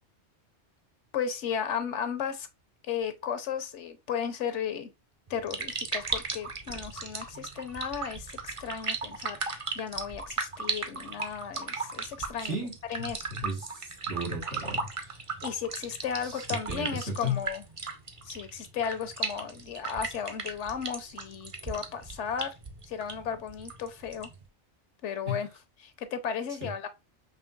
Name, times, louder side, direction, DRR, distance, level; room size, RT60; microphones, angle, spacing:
voice 1, 1.1-2.5 2.9-4.9 5.3-12.6 12.9-13.3 15.4-17.6 18.2-22.5 22.9-24.3 25.0-25.5 25.8-26.9, left 7 dB, 90° left, 1.1 m, -35 dB
sound 1, 5.3-24.4, right 4 dB, 35° right, 0.6 m, -37 dB
voice 2, 12.4-12.7 13.0-15.2 16.2-17.4 25.3-25.4 26.6-26.7, left 2 dB, 90° right, 2.0 m, -35 dB
5.4 x 2.9 x 2.3 m
omnidirectional pair, 1.2 m